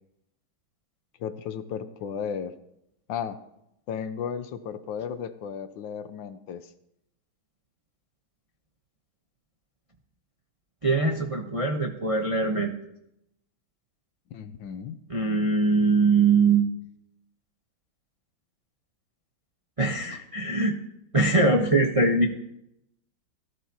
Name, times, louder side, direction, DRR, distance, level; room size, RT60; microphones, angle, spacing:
voice 1, 1.2-2.6 3.1-3.4 3.9-6.7 14.3-15.0, left 7 dB, 70° left, 11 dB, 1.4 m, -34 dB
voice 2, 10.8-12.7 15.1-16.7 19.8-20.8 21.1-22.3, right 3 dB, 35° right, 1 dB, 0.5 m, -22 dB
18.0 x 13.5 x 2.9 m, 0.81 s
omnidirectional pair, 2.3 m